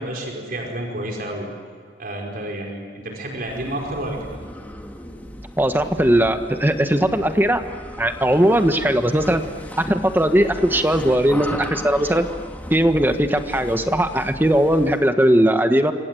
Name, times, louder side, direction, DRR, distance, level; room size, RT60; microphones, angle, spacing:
voice 1, 0.0-1.5 2.0-4.4, right 1 dB, 55° right, 0 dB, 5.2 m, -30 dB
sound 1, 3.4-15.1, equal, 10° left, 1.8 m, -36 dB
voice 2, 5.6-7.6 8.0-9.4 9.8-12.3 12.7-15.9, right 1 dB, 10° right, 7 dB, 1.3 m, -18 dB
28.0 x 25.0 x 7.8 m, 2.1 s
head